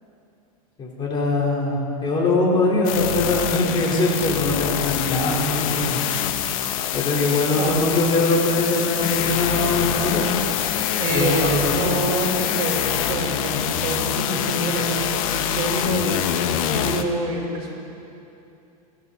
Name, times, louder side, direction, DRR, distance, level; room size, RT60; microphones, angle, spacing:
voice 1, 0.8-6.0 6.9-10.2 11.1-12.0, left 2 dB, 25° left, -3 dB, 4.1 m, -22 dB
sound 1, 2.8-17.0, left 10 dB, 65° left, 1.1 m, -25 dB
voice 2, 10.9-17.7, right 2 dB, 45° right, -3 dB, 4.9 m, -27 dB
21.5 x 15.0 x 4.1 m, 2.7 s
supercardioid pair, 135°, 19 cm